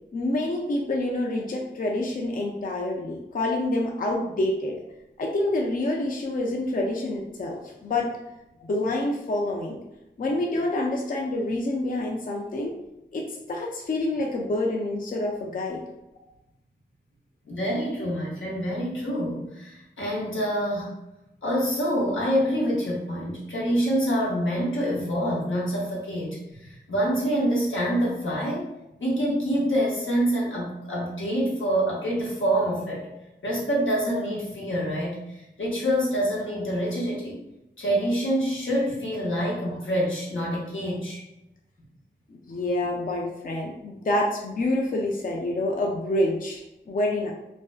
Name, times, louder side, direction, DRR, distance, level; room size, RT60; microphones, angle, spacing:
voice 1, 0.1-4.8 5.2-8.1 8.6-9.8 10.2-12.8 13.1-15.8 42.3-47.3, left 1 dB, 45° left, -1 dB, 0.4 m, -27 dB
voice 2, 17.4-20.9 21.4-28.7 29.0-33.0 33.4-37.4 37.8-41.2, equal, 85° left, -5 dB, 0.8 m, -26 dB
2.5 x 2.1 x 2.3 m, 0.91 s
wide cardioid pair, 40°, 20 cm